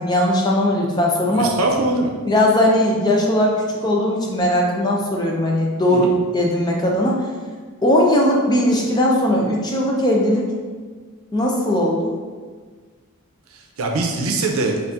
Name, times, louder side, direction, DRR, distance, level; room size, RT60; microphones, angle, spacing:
voice 1, 0.0-1.5 2.3-7.3 7.8-10.5 11.3-12.1, left 1 dB, 20° left, -2 dB, 0.5 m, -18 dB
voice 2, 1.4-2.1 5.9-6.2 13.8-14.8, right 2 dB, 85° right, 2 dB, 0.6 m, -22 dB
4.0 x 2.5 x 3.5 m, 1.5 s
head